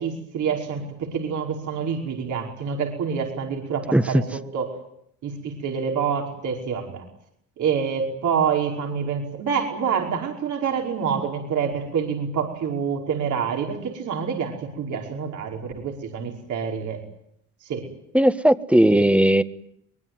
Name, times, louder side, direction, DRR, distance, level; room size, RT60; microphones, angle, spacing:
voice 1, 0.0-4.2 4.5-4.7 5.2-7.0 7.6-17.0 17.6-17.8 18.7-19.0, right 6 dB, 75° right, 1 dB, 5.4 m, -27 dB
voice 2, 3.9-4.2 18.1-19.4, right 1 dB, 5° right, 12 dB, 1.4 m, -17 dB
23.5 x 21.5 x 9.6 m, 0.71 s
cardioid pair, 90°, 30 cm